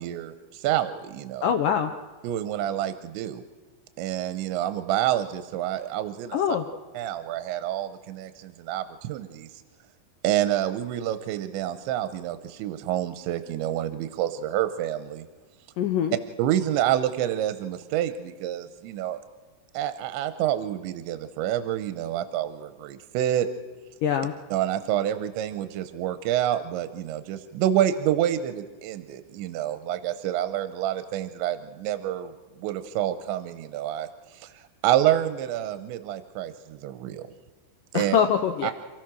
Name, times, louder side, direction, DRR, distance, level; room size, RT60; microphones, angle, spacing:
voice 1, 0.0-1.5 2.2-3.4 4.0-6.4 6.9-9.5 10.2-15.3 16.4-19.2 19.7-23.5 24.5-32.3 32.6-37.3 37.9-38.2 38.6-38.7, right 12 dB, 85° right, 10 dB, 3.2 m, -28 dB
voice 2, 1.4-1.9 6.3-6.7 15.8-16.2 24.0-24.3 37.9-38.7, left 8 dB, 85° left, 6 dB, 1.9 m, -23 dB
28.0 x 16.0 x 6.2 m, 1.3 s
omnidirectional pair, 5.3 m